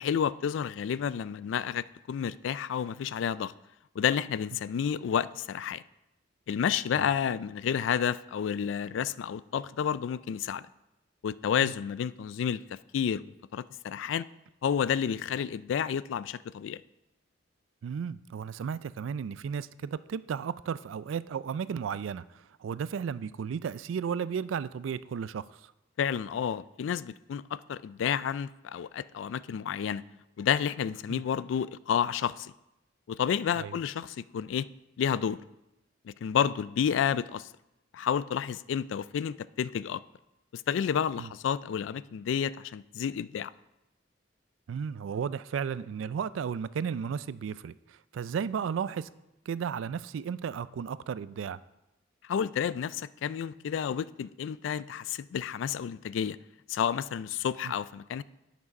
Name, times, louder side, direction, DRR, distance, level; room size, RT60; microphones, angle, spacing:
voice 1, 0.0-3.5 4.0-5.8 6.5-10.6 11.2-14.2 14.6-16.8 26.0-30.0 30.4-32.5 33.1-34.7 35.0-35.4 36.1-37.5 37.9-40.0 40.5-43.5 52.3-56.4 56.7-58.2, left 8 dB, 70° left, 0.3 m, -30 dB
voice 2, 17.8-25.7 31.1-31.2 33.6-33.8 41.2-41.3 44.7-49.1 49.5-51.6 57.6-57.7, right 7 dB, 80° right, 0.3 m, -34 dB
9.7 x 6.1 x 5.2 m
head